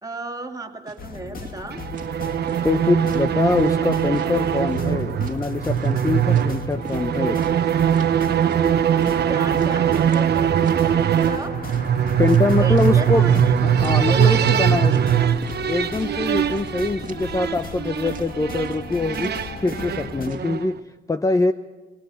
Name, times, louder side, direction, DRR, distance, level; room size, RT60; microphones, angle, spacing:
voice 1, 0.0-1.8 9.3-11.6 12.6-13.5 14.1-15.2, right 2 dB, 20° right, 2 dB, 2.6 m, -34 dB
sound 1, 0.9-1.0 1.4-1.6 1.9-2.2 2.5-3.3 3.6-3.8 4.1-4.9 5.2-5.4 5.8-7.1 7.4-7.6 7.9-8.1 8.5-8.7 9.0-10.3 10.6-10.8 11.2-11.4 11.7-12.0 12.2-13.0 13.3-13.5 13.8-14.1 14.3-14.6 14.9-15.6 16.0-16.1 16.5-16.8 17.0-17.3 17.6-17.8 18.1-18.3 18.7-18.9 19.2-19.4 19.7-20.5, right 6 dB, 40° right, 1.8 m, -40 dB
sound 2, 1.0-20.3, left 5 dB, 45° left, 2.1 m, -37 dB
sound 3, 1.7-20.8, right 9 dB, 55° right, 1.1 m, -21 dB
voice 2, 2.6-7.4 12.2-15.0 15.7-21.5, left 3 dB, 15° left, 10 dB, 0.7 m, -24 dB
26.0 x 20.0 x 5.7 m, 1.1 s
cardioid pair, 90°, 20 cm